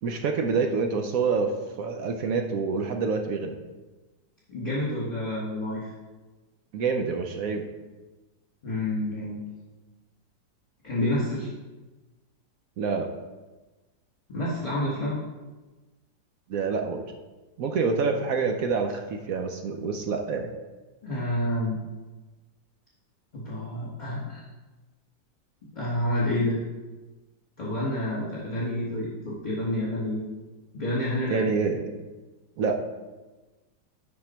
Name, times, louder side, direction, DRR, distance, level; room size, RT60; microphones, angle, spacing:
voice 1, 0.0-3.6 6.7-7.7 12.8-13.1 16.5-17.0 17.6-20.5 31.3-32.0 32.6-32.8, right 4 dB, 65° right, 4 dB, 0.9 m, -27 dB
voice 2, 4.5-5.9 8.6-9.4 10.8-11.5 14.3-15.2 21.0-21.8 23.3-24.4 25.7-26.6 27.6-30.2 30.7-31.4, left 1 dB, 25° left, -7 dB, 1.8 m, -29 dB
11.0 x 4.3 x 4.4 m, 1.2 s
omnidirectional pair, 2.0 m